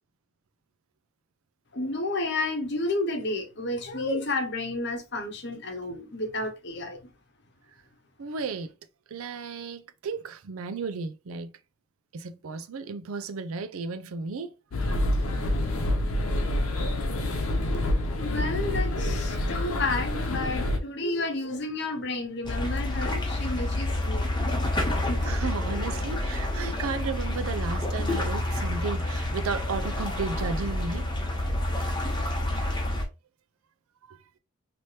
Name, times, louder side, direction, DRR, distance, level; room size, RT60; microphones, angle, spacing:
voice 1, 1.7-7.0 17.7-17.9 18.2-24.3 25.1-25.3, left 2 dB, 50° left, 0.9 m, -31 dB
voice 2, 8.2-8.7 9.1-11.5 12.1-14.5 25.2-31.1 34.0-34.2, right 4 dB, 80° right, 0.5 m, -34 dB
sound 1, 14.7-20.8, left 1 dB, 80° left, 0.7 m, -27 dB
sound 2, 22.4-33.0, left 1 dB, 20° left, 0.9 m, -28 dB
3.2 x 2.9 x 2.8 m
head